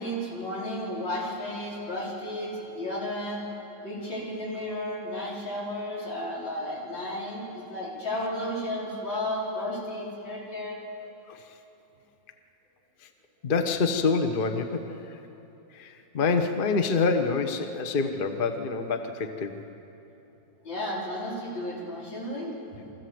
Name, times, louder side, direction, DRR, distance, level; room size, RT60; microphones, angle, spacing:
voice 1, 0.0-3.5 3.8-10.8 20.6-22.9, left 1 dB, 90° left, -6 dB, 5.0 m, -33 dB
voice 2, 13.4-15.2 15.7-19.6, left 4 dB, 35° left, 6 dB, 1.0 m, -26 dB
24.5 x 14.5 x 7.9 m, 2.9 s
omnidirectional pair, 2.0 m